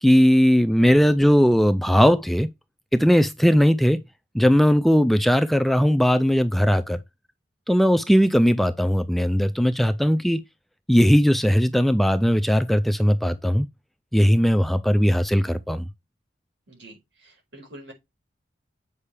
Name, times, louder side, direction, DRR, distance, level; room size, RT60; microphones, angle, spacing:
voice 1, 0.0-2.5 2.9-4.0 4.3-7.0 7.7-10.4 10.9-13.7 14.1-15.9, equal, ahead, 0.3 m, -18 dB
voice 2, 16.7-17.9, right 1 dB, 75° right, 5.1 m, -46 dB
8.3 x 5.5 x 3.4 m
head